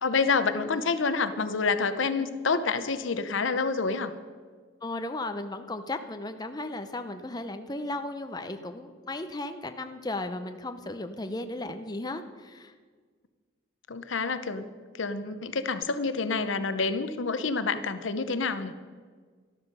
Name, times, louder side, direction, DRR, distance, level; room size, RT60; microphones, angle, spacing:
voice 1, 0.0-4.1 13.9-14.7 15.0-18.7, left 4 dB, 70° left, 11 dB, 0.8 m, -28 dB
voice 2, 4.8-12.7, left 2 dB, 20° left, 7 dB, 0.6 m, -35 dB
12.5 x 12.5 x 5.4 m, 1.5 s
head